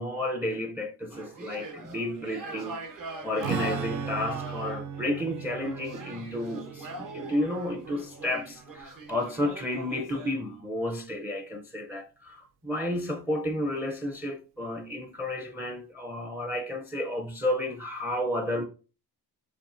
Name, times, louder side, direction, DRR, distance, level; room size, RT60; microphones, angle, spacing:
voice 1, 0.0-18.6, left 1 dB, 5° right, 0.5 m, -32 dB
sound 1, 1.1-10.4, right 2 dB, 55° right, 1.2 m, -42 dB
Strum, 3.4-9.0, right 8 dB, 70° right, 0.6 m, -38 dB
5.8 x 3.6 x 2.5 m
wide cardioid pair, 150°, 40 cm